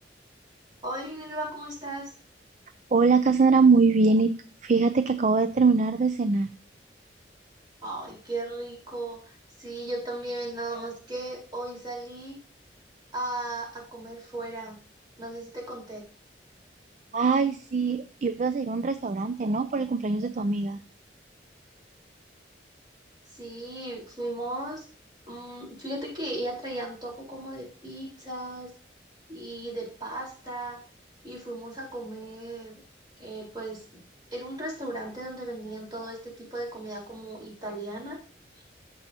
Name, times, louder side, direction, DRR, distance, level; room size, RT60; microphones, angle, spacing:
voice 1, 0.8-2.1 7.8-12.4 13.1-14.8 15.2-16.0 23.3-24.8 25.3-28.7 29.3-30.8 31.2-32.8 33.2-34.0 34.3-38.2, right 1 dB, 25° right, -3 dB, 4.0 m, -36 dB
voice 2, 2.9-6.5 17.1-20.8, right 4 dB, 40° right, 10 dB, 0.4 m, -23 dB
14.0 x 5.5 x 2.8 m, 0.38 s
head